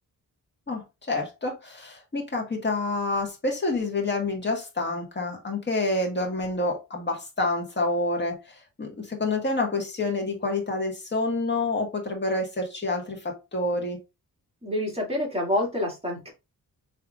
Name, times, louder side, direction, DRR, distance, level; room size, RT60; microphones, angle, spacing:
voice 1, 0.7-14.0, left 2 dB, 30° left, 1 dB, 1.7 m, -28 dB
voice 2, 14.6-16.3, left 1 dB, 15° right, -1 dB, 2.3 m, -27 dB
5.0 x 3.3 x 2.4 m, 0.26 s
cardioid pair, 80°, 35 cm